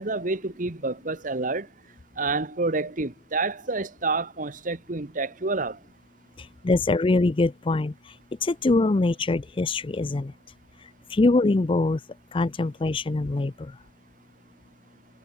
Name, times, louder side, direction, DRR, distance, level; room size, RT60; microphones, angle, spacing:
voice 1, 0.0-1.7 2.2-5.8, right 3 dB, 50° right, 1.4 m, -28 dB
voice 2, 6.6-7.9 8.4-10.3 11.1-12.0 12.3-13.5, left 2 dB, 30° left, 0.5 m, -23 dB
head